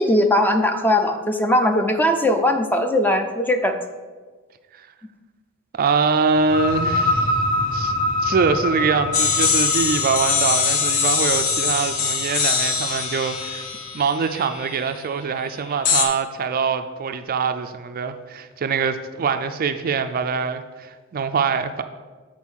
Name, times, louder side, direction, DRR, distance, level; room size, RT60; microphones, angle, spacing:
voice 1, 0.0-3.8, left 1 dB, 10° left, 6 dB, 0.5 m, -19 dB
voice 2, 5.7-7.4 7.7-7.9 8.2-13.6 13.9-21.8, right 5 dB, 45° right, 9 dB, 0.4 m, -23 dB
sound 1, 6.3-13.8, left 1 dB, 35° left, 2.1 m, -26 dB
sound 2, 9.1-14.8 15.9-16.1, left 6 dB, 70° left, 1.0 m, -22 dB
7.4 x 4.4 x 6.2 m, 1.4 s
head